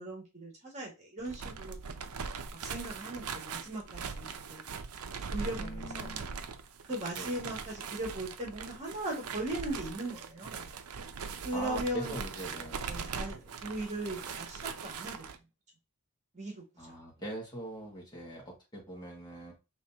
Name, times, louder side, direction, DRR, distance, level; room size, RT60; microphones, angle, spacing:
voice 1, 0.0-1.8 2.6-4.7 5.2-6.1 6.9-10.7 11.4-12.1 12.4-15.2 16.3-16.9, right 1 dB, 35° right, -2 dB, 2.0 m, -39 dB
sound 1, 1.2-15.4, right 5 dB, 75° right, 0.6 m, -41 dB
voice 2, 5.6-6.3 7.2-7.4 11.5-12.9 16.8-19.5, right 1 dB, 20° left, -2 dB, 1.8 m, -42 dB
5.0 x 3.3 x 2.8 m, 0.27 s
head